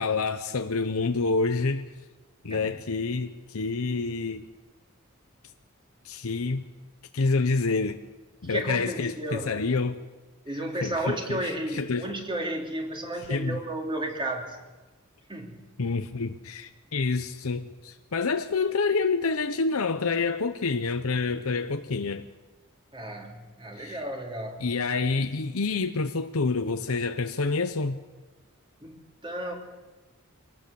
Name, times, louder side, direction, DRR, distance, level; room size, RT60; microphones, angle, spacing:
voice 1, 0.0-1.8 2.4-4.4 6.0-6.6 7.1-8.0 8.4-10.0 10.8-12.1 13.3-13.6 15.8-22.3 23.8-24.0 24.6-28.0, left 4 dB, 90° left, 0.9 m, -28 dB
voice 2, 8.4-9.6 10.4-14.6 15.3-15.6 22.9-24.7 28.8-29.5, right 1 dB, 25° right, 3.0 m, -33 dB
24.0 x 18.0 x 7.0 m
head